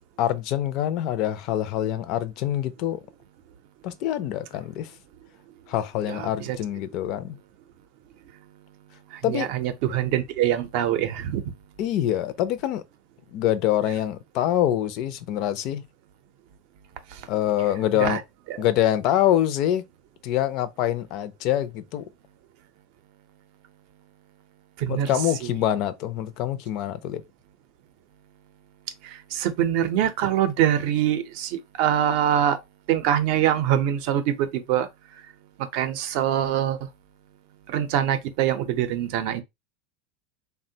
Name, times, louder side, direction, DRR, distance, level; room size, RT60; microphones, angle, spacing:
voice 1, 0.2-3.0 3.8-4.9 5.7-7.4 9.2-9.5 11.8-12.8 13.3-15.8 17.3-18.2 18.6-19.9 20.2-22.0 24.9-27.2, left 12 dB, 50° left, 0.4 m, -25 dB
voice 2, 6.1-6.6 9.1-11.4 17.1-17.2 18.0-18.2 24.8-25.1 29.0-32.6 32.9-34.9 35.7-36.8 37.7-39.4, right 10 dB, 60° right, 0.5 m, -24 dB
3.5 x 2.1 x 2.7 m
supercardioid pair, 155°, 0 cm